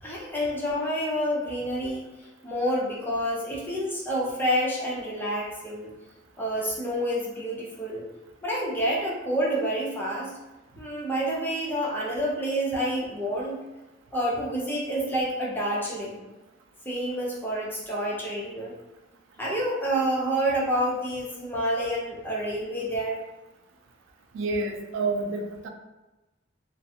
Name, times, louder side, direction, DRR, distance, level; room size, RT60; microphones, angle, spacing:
voice 1, 0.0-2.1 2.4-5.9 6.4-8.0 8.4-10.3 10.8-13.6 14.1-16.2 16.9-18.7 19.4-23.2, equal, 10° left, -5 dB, 0.5 m, -28 dB
voice 2, 24.3-25.7, right 3 dB, 85° right, 4 dB, 0.4 m, -29 dB
2.4 x 2.2 x 2.7 m, 1.1 s
head